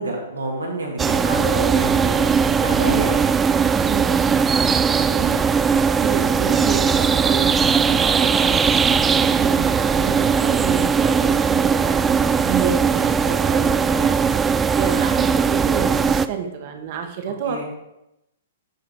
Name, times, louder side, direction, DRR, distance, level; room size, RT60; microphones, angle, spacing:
voice 1, 0.0-2.3 2.6-3.3 17.5-17.6, right 2 dB, 90° right, -1 dB, 2.3 m, -28 dB
sound 1, 1.0-16.3, right 6 dB, 15° right, 0.3 m, -19 dB
voice 2, 3.8-4.2 4.6-5.4 6.0-12.2 12.4-17.6, right 7 dB, 50° right, 4 dB, 1.4 m, -30 dB
10.0 x 4.1 x 4.8 m, 0.89 s
hypercardioid pair, 120°, 0 cm